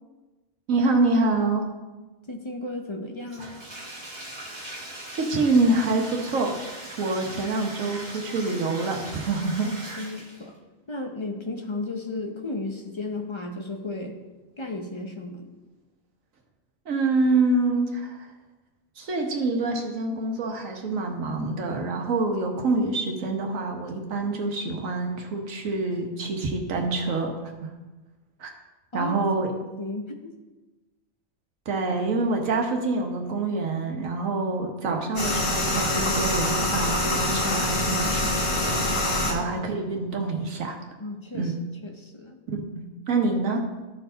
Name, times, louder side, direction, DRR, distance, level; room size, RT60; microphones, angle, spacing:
voice 1, 0.7-1.7 4.8-4.9 5.1-6.6 7.0-10.0 16.9-18.2 19.0-27.3 27.6-27.7 28.4-28.5 28.9-29.5 31.7-38.8 39.3-40.8 41.3-41.5 42.7-43.7, right 3 dB, 80° right, 2 dB, 1.5 m, -26 dB
voice 2, 2.3-3.6 9.6-10.5 10.9-14.2 14.6-15.5 28.9-29.2 29.8-30.3 39.2-39.6 41.0-41.5 41.8-42.4, left 2 dB, 30° left, 3 dB, 0.7 m, -34 dB
Bathtub (filling or washing), 3.3-10.5, right 1 dB, 30° right, 1.9 m, -40 dB
sound 1, 35.2-39.3, left 1 dB, 45° left, 1.6 m, -25 dB
13.5 x 4.5 x 3.9 m, 1.2 s
omnidirectional pair, 1.4 m